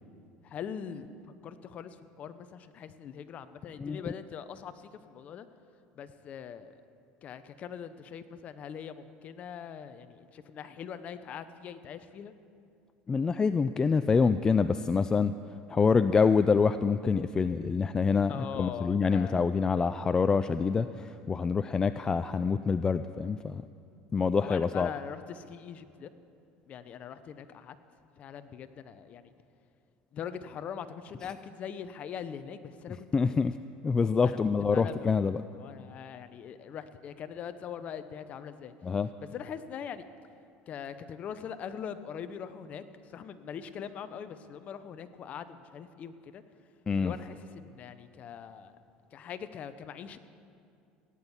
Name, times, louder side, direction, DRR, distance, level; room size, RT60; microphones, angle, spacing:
voice 1, 0.4-1.1 1.4-5.5 5.9-6.8 7.2-12.3 18.3-19.5 24.4-26.1 26.7-27.8 28.2-29.3 30.1-33.4 34.2-34.4 34.7-38.7 39.3-40.0 40.7-46.4 47.0-48.7 49.1-50.2, left 8 dB, 40° left, 11 dB, 0.8 m, -42 dB
voice 2, 13.1-15.3 15.7-23.7 24.1-24.9 33.1-33.5 33.8-35.4 38.8-39.1 46.9-47.1, left 5 dB, 20° left, 11 dB, 0.3 m, -26 dB
16.5 x 9.9 x 7.2 m, 2.4 s
supercardioid pair, 120°, 3 cm